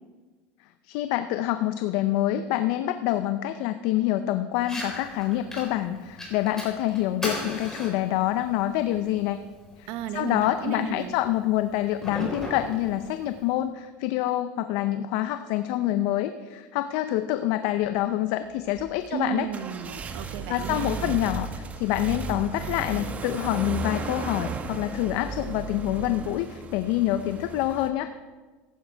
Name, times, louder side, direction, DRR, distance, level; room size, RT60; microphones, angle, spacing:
voice 1, 0.8-9.4 9.8-9.9 10.1-19.5 20.5-28.1, left 13 dB, 70° left, 10 dB, 0.5 m, -26 dB
Fire, 4.6-13.6, left 1 dB, 10° left, 4.4 m, -39 dB
voice 2, 9.9-11.2 19.1-21.2, right 9 dB, 70° right, 10 dB, 0.9 m, -34 dB
sound 1, 18.7-27.9, right 4 dB, 30° right, 1.0 m, -35 dB
15.0 x 11.0 x 3.4 m, 1.3 s
supercardioid pair, 125°, 5 cm